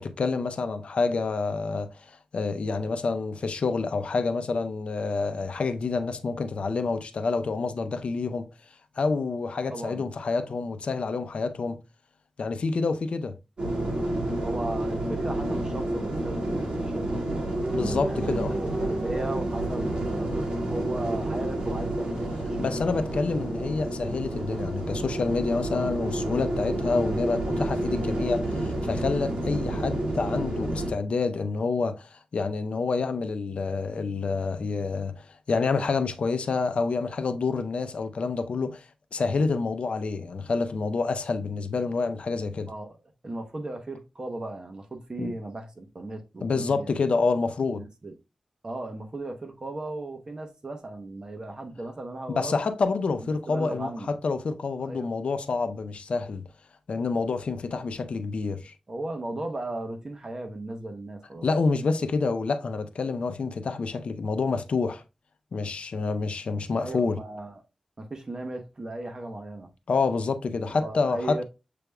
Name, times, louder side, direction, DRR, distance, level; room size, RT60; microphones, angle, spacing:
voice 1, 0.0-8.5 9.0-11.8 12.4-13.3 17.7-18.5 22.6-38.8 39.1-42.7 45.2-45.3 46.4-47.8 52.4-56.4 56.9-58.7 61.4-65.0 65.5-67.2 69.9-71.4, left 4 dB, 70° left, 0.5 m, -28 dB
voice 2, 9.7-10.1 10.4-10.5 14.4-17.4 18.1-18.3 18.6-23.0 42.6-43.0 43.2-47.0 47.7-48.1 48.6-52.5 53.2-54.1 54.8-55.1 58.9-61.5 66.8-67.6 68.0-69.7 70.7-71.4, right 2 dB, 40° right, 0.9 m, -36 dB
sound 1, 13.6-30.9, right 1 dB, 55° right, 1.8 m, -29 dB
6.8 x 3.4 x 2.2 m
wide cardioid pair, 105°, 2 cm